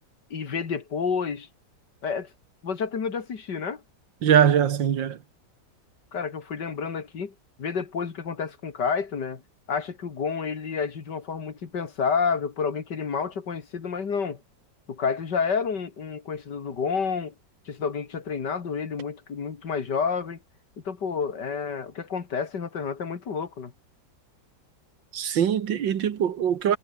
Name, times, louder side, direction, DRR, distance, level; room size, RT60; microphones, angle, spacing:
voice 1, 0.3-1.5 2.0-2.3 2.6-3.8 6.1-9.4 9.7-14.4 14.9-17.3 17.7-20.4 20.8-23.7, left 6 dB, 65° left, 2.7 m, -29 dB
voice 2, 4.2-5.2 25.1-26.8, right 9 dB, 80° right, 2.1 m, -22 dB
omnidirectional pair, 2.0 m